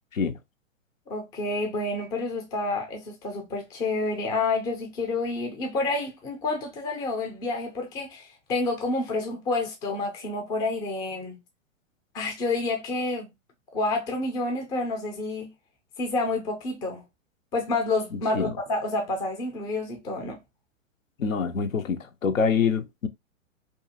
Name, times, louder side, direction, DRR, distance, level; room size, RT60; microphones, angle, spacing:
voice 1, 1.1-11.4 12.1-13.3 13.7-15.5 16.0-17.0 17.5-20.4, left 2 dB, 10° left, 0.4 m, -29 dB
voice 2, 21.2-23.1, left 6 dB, 85° left, 0.5 m, -25 dB
2.5 x 2.4 x 2.7 m
figure-of-eight pair, 110°, 39 cm